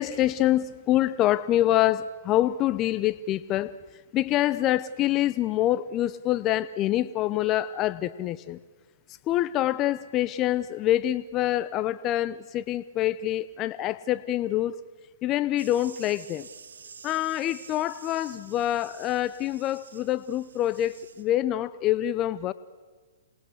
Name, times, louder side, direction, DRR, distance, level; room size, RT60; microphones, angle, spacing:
voice 1, 0.0-3.7 4.1-8.6 9.3-14.8 15.2-16.5 17.0-22.5, left 13 dB, 30° left, 16 dB, 0.7 m, -26 dB
sound 1, 15.6-21.2, right 5 dB, 80° right, 2.7 m, -49 dB
27.5 x 20.5 x 8.0 m, 1.4 s
hypercardioid pair, 135°, 0 cm